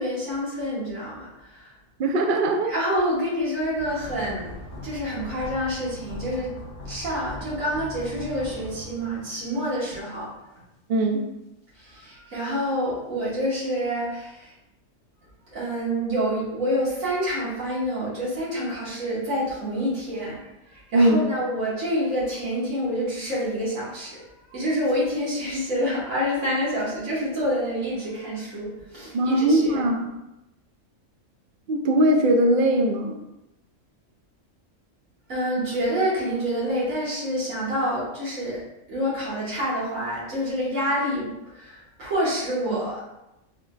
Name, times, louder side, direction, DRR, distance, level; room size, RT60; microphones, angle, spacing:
voice 1, 0.0-1.7 2.7-6.5 6.9-10.3 11.7-14.5 15.5-29.8 35.3-38.6 38.9-43.0, equal, 80° right, -8 dB, 1.9 m, -27 dB
voice 2, 2.0-2.7 10.9-11.3 20.9-21.2 29.1-30.1 31.7-33.2 42.7-42.8, right 1 dB, 65° right, 3 dB, 0.5 m, -20 dB
sound 1, 3.8-9.8 10.1-10.2, left 2 dB, 55° left, 0.7 m, -40 dB
3.9 x 3.6 x 2.4 m, 0.92 s
omnidirectional pair, 1.4 m